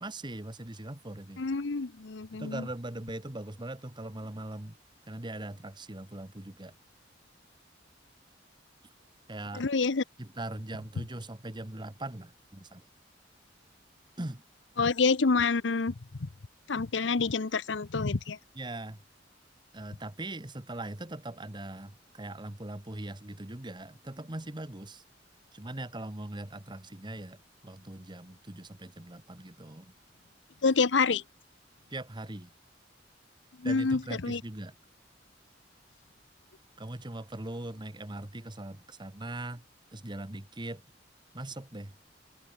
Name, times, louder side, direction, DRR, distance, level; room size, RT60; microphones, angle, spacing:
voice 1, 0.0-1.5 2.3-4.8 5.1-6.7 9.3-9.7 10.2-12.9 14.2-14.4 18.5-19.0 19.7-25.0 25.5-29.9 31.9-32.5 33.6-34.8 36.8-39.6 39.9-40.8 41.3-41.9, right 1 dB, 25° right, 1.4 m, -40 dB
voice 2, 1.4-2.6 9.6-10.0 14.8-15.9 16.2-16.3 16.7-18.4 30.6-31.2 33.6-34.4, left 4 dB, 75° left, 0.8 m, -27 dB
head